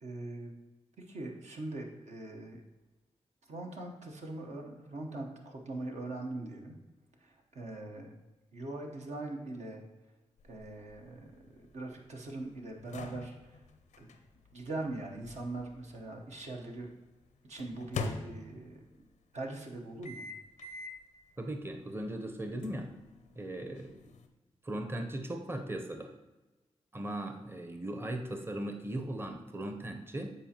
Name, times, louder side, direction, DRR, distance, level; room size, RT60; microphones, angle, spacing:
voice 1, 0.0-0.5 1.0-2.6 3.5-6.8 7.2-8.1 8.5-9.8 10.4-13.6 14.0-14.1 14.5-16.9 17.5-18.8 19.3-20.2, right 2 dB, 70° right, 1 dB, 0.9 m, -41 dB
sound 1, 10.4-16.5 17.6-18.9 20.0-21.1 21.5-21.7 22.6-24.3, left 4 dB, 85° left, 0.5 m, -44 dB
voice 2, 21.4-22.9 23.3-24.0 24.6-26.1 26.9-30.3, right 1 dB, 20° right, 5 dB, 0.7 m, -38 dB
8.3 x 4.3 x 2.9 m, 1.1 s
cardioid pair, 50°, 12 cm